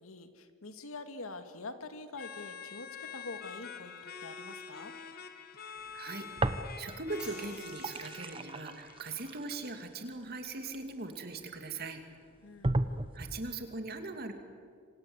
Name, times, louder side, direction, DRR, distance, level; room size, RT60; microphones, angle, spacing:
voice 1, 0.0-4.9 12.4-12.8, left 3 dB, 80° left, 8 dB, 2.1 m, -45 dB
sound 1, 2.1-9.0, left 6 dB, 45° left, 1.4 m, -46 dB
voice 2, 5.9-12.0 13.1-14.3, right 3 dB, 45° right, 6 dB, 2.8 m, -40 dB
sound 2, 6.4-7.2 7.5-11.4 12.0-12.1 12.6-13.5, right 2 dB, 25° right, 0.9 m, -35 dB
sound 3, 7.2-8.7, right 2 dB, 5° right, 6.3 m, -51 dB
27.0 x 26.5 x 8.2 m, 2.2 s
head